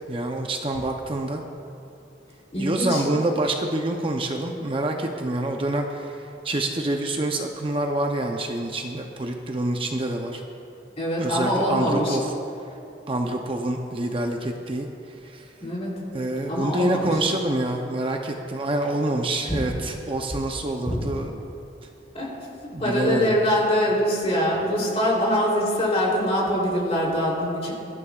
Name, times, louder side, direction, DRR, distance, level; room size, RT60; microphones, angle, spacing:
voice 1, 0.1-1.4 2.6-10.4 11.2-12.2 13.1-14.9 15.2-15.5 16.1-21.3 22.7-23.4, right 1 dB, 30° right, 2 dB, 0.7 m, -26 dB
voice 2, 2.5-3.0 11.0-12.2 15.6-15.9 16.5-17.1 19.5-19.6 20.9-21.0 22.1-22.3 22.8-27.7, equal, 35° left, -4 dB, 3.3 m, -23 dB
23.5 x 12.5 x 2.4 m, 2.7 s
head